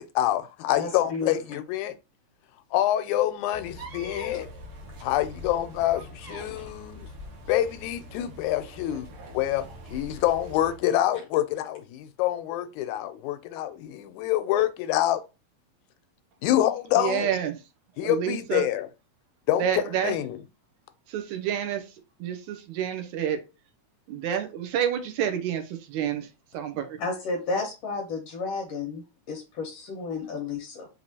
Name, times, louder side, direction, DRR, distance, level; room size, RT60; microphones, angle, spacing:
voice 1, 0.0-1.9 2.7-4.5 5.0-7.1 7.5-9.1 9.3-9.6 9.9-15.2 16.4-17.3 18.0-18.9 19.5-20.4, left 13 dB, 85° left, 2.0 m, -26 dB
voice 2, 0.7-1.6 6.5-6.6 27.0-30.9, left 4 dB, 65° left, 1.8 m, -32 dB
sound 1, 3.5-10.8, equal, 60° right, 1.6 m, -43 dB
voice 3, 17.0-17.6 18.0-18.6 19.6-20.1 21.1-21.9 22.2-23.4 24.1-27.0, right 9 dB, 85° right, 2.1 m, -29 dB
5.6 x 3.0 x 2.8 m
omnidirectional pair, 3.3 m